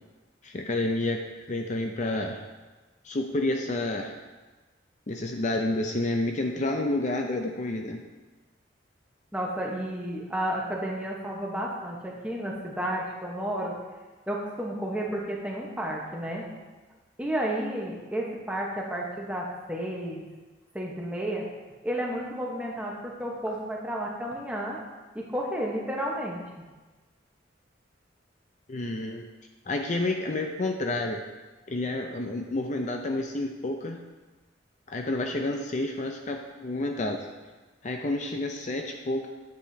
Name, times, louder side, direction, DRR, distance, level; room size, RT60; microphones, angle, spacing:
voice 1, 0.4-1.2 1.5-2.4 3.0-4.1 5.1-8.0 28.7-29.2 29.7-31.2 31.7-34.0 34.9-37.3 37.8-39.3, left 2 dB, 40° left, 3 dB, 0.5 m, -29 dB
voice 2, 9.3-13.8 14.3-16.5 17.2-20.2 20.7-21.5 21.8-24.8 25.1-26.6, right 1 dB, 5° right, -2 dB, 1.0 m, -32 dB
10.0 x 7.7 x 2.8 m, 1.3 s
head